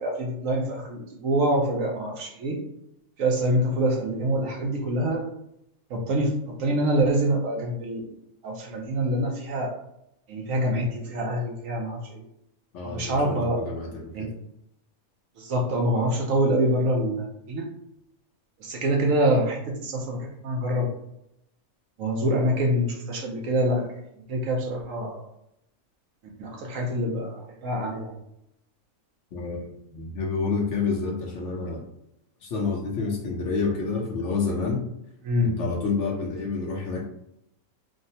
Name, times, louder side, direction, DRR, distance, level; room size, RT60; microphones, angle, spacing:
voice 1, 0.0-2.6 3.2-5.2 5.9-8.1 8.4-9.7 10.3-12.2 12.8-13.6 14.1-14.3 15.4-17.7 18.6-20.9 22.0-23.9 24.3-25.3 26.4-28.1 35.2-35.6, right 1 dB, 70° right, 1 dB, 1.0 m, -25 dB
voice 2, 12.7-14.3 29.3-29.6 29.9-31.8 32.4-34.8 35.4-37.0, left 4 dB, 65° left, -1 dB, 0.9 m, -28 dB
3.5 x 2.0 x 2.7 m, 0.79 s
omnidirectional pair, 1.5 m